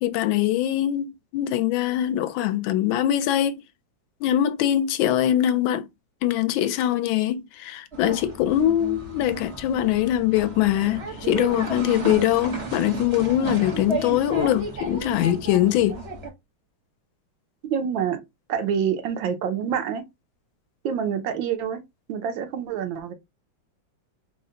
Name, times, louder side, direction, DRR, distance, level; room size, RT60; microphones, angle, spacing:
voice 1, 0.0-3.6 4.2-5.9 6.2-16.0, left 12 dB, 90° left, 1.3 m, -22 dB
sound 1, 7.9-16.3, right 3 dB, 40° right, 1.1 m, -33 dB
voice 2, 17.6-18.2 18.5-20.0 20.8-21.8 22.1-23.1, right 8 dB, 80° right, 1.5 m, -26 dB
4.1 x 2.1 x 3.7 m
omnidirectional pair, 2.1 m